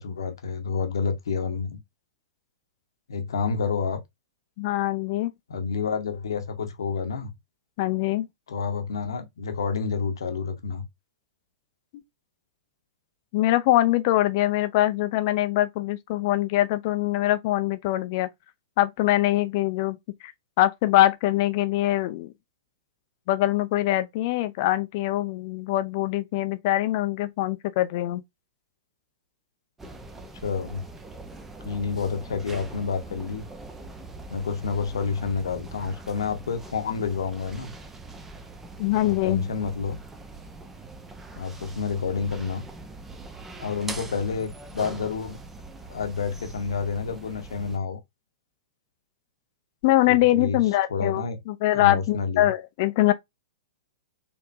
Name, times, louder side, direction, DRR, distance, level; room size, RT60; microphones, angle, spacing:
voice 1, 0.0-1.8 3.1-4.0 5.5-7.3 8.5-10.8 30.4-30.8 31.6-33.5 34.3-37.7 39.0-40.0 41.4-42.6 43.6-45.4 45.9-48.0 50.1-50.6 50.9-51.4 51.7-52.5, left 5 dB, 65° left, 0.9 m, -29 dB
voice 2, 4.6-5.3 7.8-8.3 13.3-18.3 18.8-20.0 20.2-20.3 20.6-22.3 23.3-28.2 38.8-39.5 49.8-53.1, left 15 dB, 45° left, 0.5 m, -23 dB
sound 1, 29.8-47.8, right 2 dB, 10° right, 0.6 m, -42 dB
4.3 x 2.8 x 2.5 m
figure-of-eight pair, 105°, 3 cm